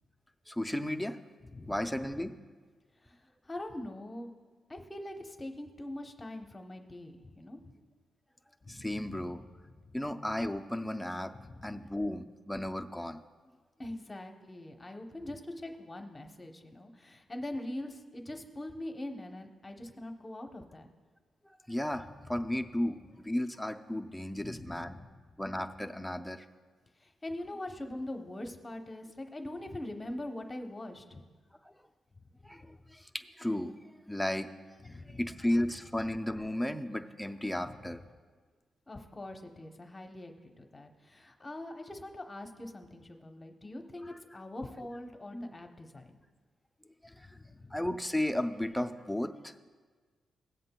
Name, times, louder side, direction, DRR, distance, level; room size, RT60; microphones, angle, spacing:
voice 1, 0.5-1.2 1.7-2.3 8.7-9.4 9.9-11.3 11.6-13.2 21.7-23.0 23.2-25.0 25.4-26.4 32.4-32.6 32.9-33.7 34.1-34.5 35.2-38.0 45.3-45.5 47.7-49.6, left 1 dB, 5° left, 7 dB, 0.4 m, -34 dB
voice 2, 1.4-1.9 3.0-4.3 4.7-7.7 8.6-9.9 11.3-12.0 13.8-20.9 21.9-22.5 24.4-25.4 27.0-31.2 34.8-35.4 37.6-38.0 38.9-46.2 47.1-47.9, left 1 dB, 20° left, 4 dB, 0.8 m, -43 dB
18.0 x 7.6 x 2.2 m, 1.5 s
cardioid pair, 125°, 0 cm